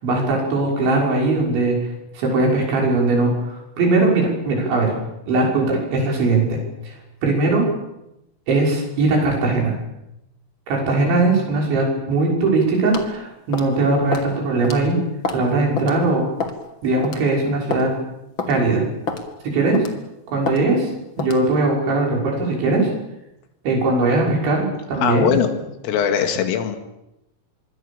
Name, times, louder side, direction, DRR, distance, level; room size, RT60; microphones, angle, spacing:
voice 1, 0.0-1.8 2.1-5.0 5.3-6.6 6.8-6.9 7.2-7.6 8.5-9.7 10.7-15.0 15.3-16.3 16.8-17.9 18.5-18.8 19.4-19.8 20.3-20.9 21.2-22.9 23.6-25.3, right 3 dB, 65° right, -1 dB, 8.5 m, -20 dB
sound 1, 12.9-13.1 13.5-13.7 14.1-14.3 14.6-14.8 15.2-15.5 15.8-15.9 16.4-16.6 17.0-17.2 17.7-17.9 18.4-18.5 19.1-19.3 19.7-20.0 20.5-20.6 21.2-21.4, left 5 dB, 45° left, 1.6 m, -27 dB
voice 2, 25.0-26.8, left 8 dB, 85° left, 7 dB, 4.6 m, -21 dB
26.0 x 23.0 x 7.2 m, 0.88 s
omnidirectional pair, 5.8 m